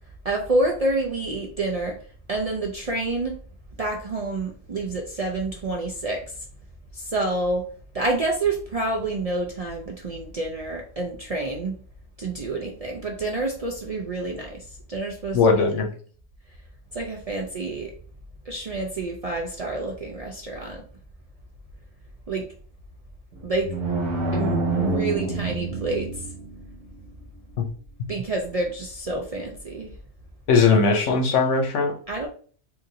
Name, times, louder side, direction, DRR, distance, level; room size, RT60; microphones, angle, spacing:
voice 1, 0.2-2.0 2.3-3.3 3.8-6.3 6.9-7.7 7.9-11.7 12.2-15.4 16.9-17.9 18.5-20.8 22.3-22.5 23.4-23.8 24.3-26.2 28.1-29.9 32.1-32.3, right 2 dB, 55° right, 0 dB, 0.4 m, -28 dB
voice 2, 15.3-15.9 27.6-27.7 30.5-32.0, left 4 dB, 85° left, 3 dB, 1.1 m, -19 dB
sound 1, 23.3-26.6, right 3 dB, 80° right, 1.0 m, -26 dB
3.9 x 2.6 x 2.7 m, 0.43 s
omnidirectional pair, 1.2 m